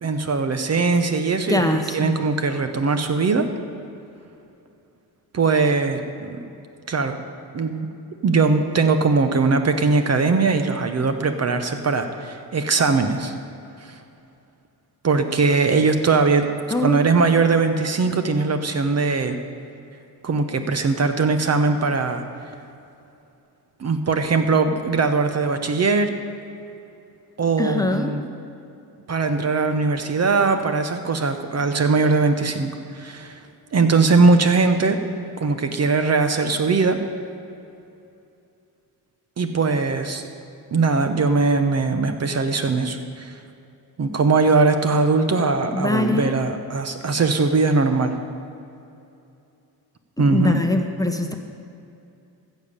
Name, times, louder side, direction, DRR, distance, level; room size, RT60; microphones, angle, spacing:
voice 1, 0.0-3.5 5.3-6.4 6.9-7.2 7.5-7.9 8.2-13.3 13.8-13.9 15.0-16.5 16.8-19.4 20.2-22.2 23.8-26.1 27.4-28.2 29.1-33.4 33.7-35.0 35.4-37.0 39.4-40.2 40.7-43.3 44.0-48.1 50.2-50.6, right 4 dB, 40° right, 7 dB, 1.0 m, -20 dB
voice 2, 1.5-2.1 16.7-17.1 27.6-28.2 45.7-46.4 50.3-51.4, left 2 dB, 10° left, 4 dB, 0.9 m, -22 dB
15.0 x 7.4 x 6.8 m, 2.7 s
cardioid pair, 100°, 40 cm